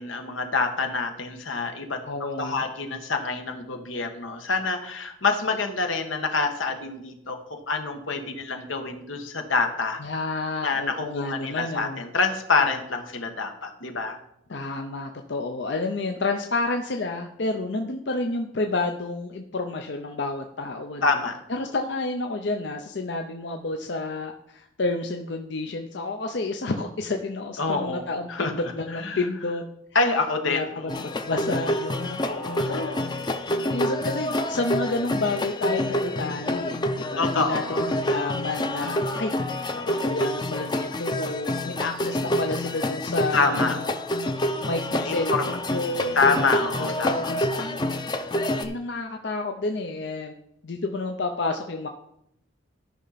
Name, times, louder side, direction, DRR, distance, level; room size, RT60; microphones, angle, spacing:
voice 1, 0.0-10.0 10.6-14.2 21.0-21.4 27.6-28.5 28.9-29.2 29.9-31.2 32.2-32.7 37.2-37.9 38.3-38.7 43.3-43.8 45.0-45.6 46.1-47.3, left 4 dB, 90° left, 5 dB, 1.4 m, -27 dB
voice 2, 2.0-2.7 10.0-12.0 14.5-21.1 21.5-29.6 30.5-30.9 31.2-33.1 33.7-39.3 39.7-43.8 44.6-46.2 46.8-47.9 48.6-50.3 50.6-51.9, left 2 dB, 65° left, 4 dB, 0.6 m, -30 dB
sound 1, 30.9-48.6, left 1 dB, 20° left, 0.6 m, -27 dB
13.0 x 5.6 x 4.1 m, 0.77 s
head